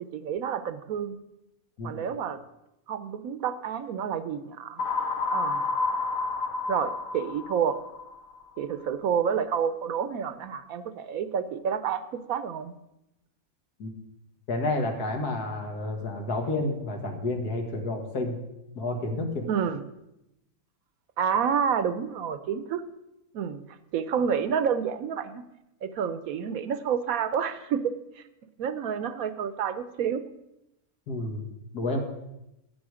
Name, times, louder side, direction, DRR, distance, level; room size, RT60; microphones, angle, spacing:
voice 1, 0.1-1.2 1.8-2.4 2.9-4.8 5.3-5.7 6.7-7.8 8.6-12.7 19.5-19.8 21.2-22.8 23.3-23.6 23.9-25.4 25.8-27.8 28.6-30.2, right 7 dB, 70° right, 12 dB, 1.1 m, -29 dB
sound 1, 4.8-8.6, left 3 dB, 65° left, 1.3 m, -30 dB
voice 2, 14.5-18.4 18.8-19.5 31.1-31.5 31.7-32.0, left 2 dB, 80° left, 3 dB, 2.3 m, -30 dB
12.5 x 8.8 x 4.9 m, 0.89 s
omnidirectional pair, 1.6 m